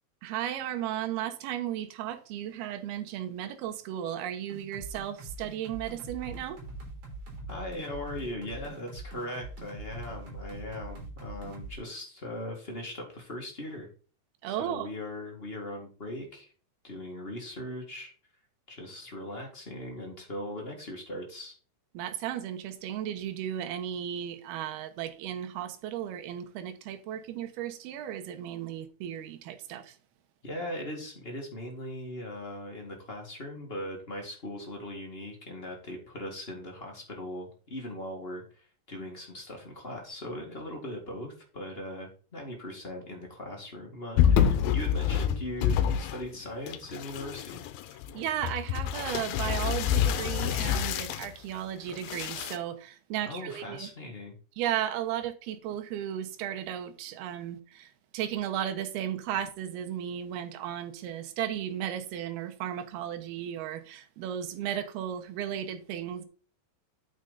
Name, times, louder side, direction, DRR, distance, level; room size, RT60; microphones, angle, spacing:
voice 1, 0.2-6.6 14.4-14.9 21.9-30.0 48.1-53.9 54.6-66.3, right 11 dB, 80° right, 2.9 m, -35 dB
sound 1, 4.5-11.8, right 2 dB, 50° right, 4.2 m, -43 dB
voice 2, 7.5-13.9 14.5-16.5 16.8-18.1 18.7-21.5 30.4-47.6 53.2-54.3, left 1 dB, 30° left, 1.0 m, -39 dB
sound 2, 44.2-46.4 46.7-51.3 51.9-52.6, left 9 dB, 80° left, 2.5 m, -27 dB
8.9 x 6.7 x 4.1 m
omnidirectional pair, 4.6 m